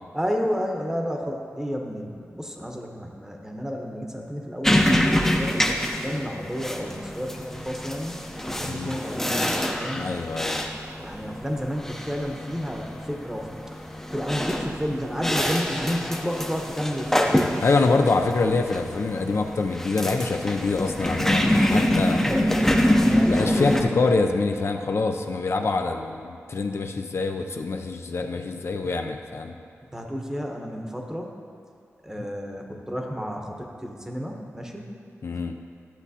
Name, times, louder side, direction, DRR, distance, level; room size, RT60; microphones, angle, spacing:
voice 1, 0.1-4.9 5.2-8.2 8.5-10.1 11.0-13.5 14.1-17.4 21.6-24.0 29.9-31.3 32.0-34.9, equal, 10° right, 1 dB, 0.9 m, -31 dB
sound 1, 4.6-23.8, left 1 dB, 10° left, 0.6 m, -25 dB
voice 2, 8.6-9.0 9.9-10.6 17.6-22.2 23.3-29.5 32.2-32.3 35.2-35.6, left 3 dB, 60° left, 4 dB, 0.4 m, -25 dB
12.0 x 7.1 x 2.8 m, 2.4 s
wide cardioid pair, 70°, 5 cm